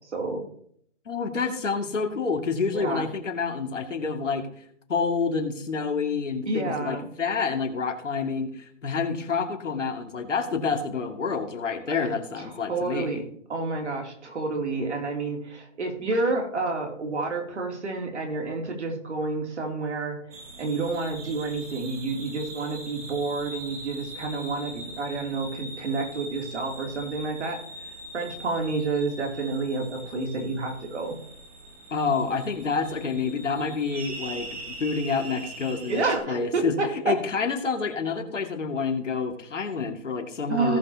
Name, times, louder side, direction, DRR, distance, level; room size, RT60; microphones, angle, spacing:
voice 1, 0.1-0.4 2.7-3.1 6.4-7.1 12.0-13.2 13.5-20.2 20.6-27.6 28.1-31.2 35.9-37.1 40.5-40.8, right 3 dB, 65° right, 2 dB, 3.0 m, -29 dB
voice 2, 1.1-4.5 4.9-13.2 31.9-36.8 37.1-40.8, left 5 dB, 80° left, 3 dB, 2.3 m, -28 dB
sound 1, 20.3-36.2, right 1 dB, 30° right, 1.6 m, -42 dB
18.0 x 6.2 x 2.9 m, 0.66 s
hypercardioid pair, 175°, 37 cm